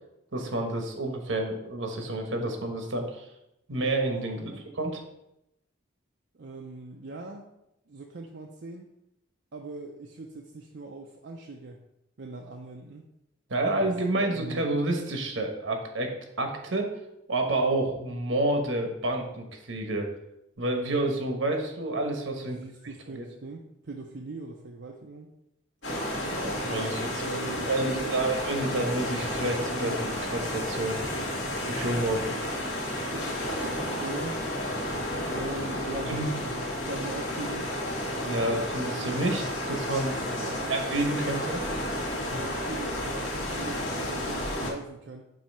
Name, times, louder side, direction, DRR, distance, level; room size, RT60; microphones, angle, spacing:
voice 1, 0.3-3.2 3.7-4.4 4.7-5.0 13.5-16.9 17.3-20.1 20.6-22.6 23.1-23.3 26.3-27.2 27.6-31.0 31.7-32.4 36.1-36.3 38.2-40.3 40.7-41.6, right 2 dB, 75° right, 3 dB, 1.1 m, -29 dB
voice 2, 4.3-4.7 6.3-7.5 7.9-8.9 9.5-11.8 12.2-13.1 13.8-13.9 14.1-14.7 22.4-25.3 27.1-28.3 32.7-34.4 35.3-37.7 40.1-40.8 42.3-45.3, right 2 dB, 60° right, 1 dB, 0.5 m, -41 dB
sound 1, 25.8-44.7, left 1 dB, 70° left, 2.1 m, -32 dB
7.4 x 2.8 x 5.4 m, 0.85 s
head